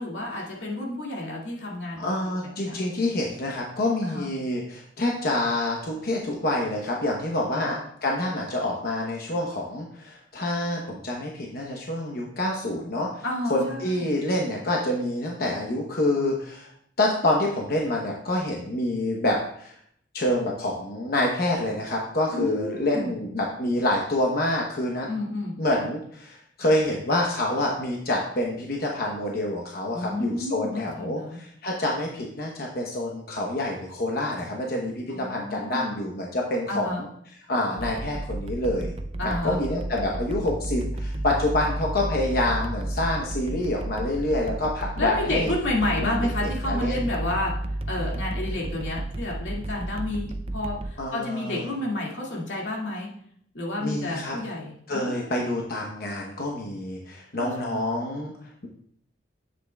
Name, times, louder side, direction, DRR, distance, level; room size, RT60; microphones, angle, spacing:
voice 1, 0.0-2.1 2.6-2.8 4.0-4.3 7.6-7.7 13.2-14.2 22.3-23.1 25.1-25.6 29.9-31.4 35.1-36.0 36.7-37.0 39.2-39.6 45.0-47.5 47.9-53.1 53.5-55.3 57.3-57.8, left 1 dB, 90° left, -3 dB, 2.2 m, -30 dB
voice 2, 2.0-13.2 13.5-16.7 17.0-19.8 20.1-25.1 25.6-37.1 37.5-38.9 39.2-45.5 46.0-46.9 51.0-51.7 53.8-54.4 54.9-58.3, left 1 dB, 55° left, -1 dB, 1.0 m, -27 dB
sound 1, 37.8-50.9, right 1 dB, 30° right, 0.5 m, -32 dB
9.9 x 7.9 x 2.3 m, 0.66 s
head